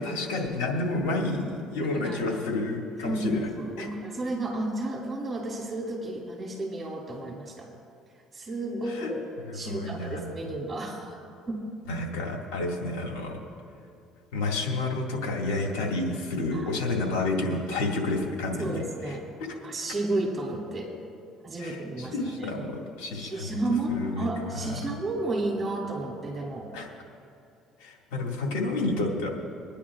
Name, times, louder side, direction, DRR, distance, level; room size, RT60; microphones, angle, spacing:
voice 1, 0.0-3.5 3.8-3.9 8.9-9.1 9.5-10.4 11.9-13.4 14.3-19.1 21.6-23.6 23.9-24.3 26.7-26.9 27.8-29.3, left 2 dB, 85° left, -1 dB, 2.1 m, -30 dB
voice 2, 1.9-2.4 3.0-7.7 8.3-9.2 9.5-11.1 11.5-11.6 16.5-16.9 18.6-19.2 19.6-20.9 21.4-22.6 23.1-26.7, right 2 dB, 20° right, -2 dB, 2.5 m, -32 dB
27.5 x 10.0 x 2.5 m, 2.4 s
supercardioid pair, 95°, 0 cm